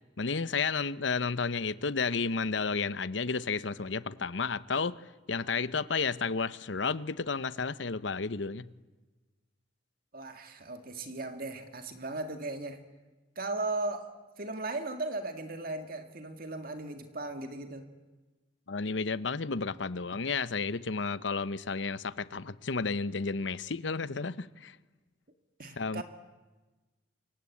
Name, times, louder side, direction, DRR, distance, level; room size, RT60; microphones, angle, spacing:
voice 1, 0.2-5.0 5.3-8.7 18.7-24.8 25.8-26.0, left 4 dB, 80° left, 0.9 m, -32 dB
voice 2, 10.1-12.8 13.4-17.9 25.6-26.0, right 2 dB, 50° right, 2.1 m, -37 dB
27.5 x 24.5 x 8.6 m
head